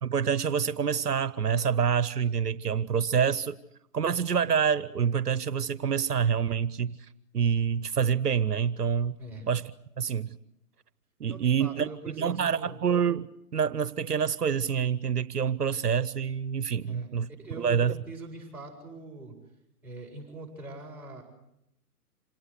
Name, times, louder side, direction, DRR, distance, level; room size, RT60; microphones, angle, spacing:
voice 1, 0.0-3.6 3.9-7.0 7.3-9.1 9.5-9.7 10.0-10.4 11.2-11.9 12.2-13.3 13.5-17.3 17.6-17.9, right 7 dB, 80° right, 16 dB, 1.0 m, -27 dB
voice 2, 9.2-9.5 11.2-12.8 16.7-17.1 17.4-19.3 19.8-21.2, right 3 dB, 5° right, -6 dB, 7.8 m, -43 dB
27.0 x 19.0 x 8.1 m, 0.82 s
figure-of-eight pair, 135°, 46 cm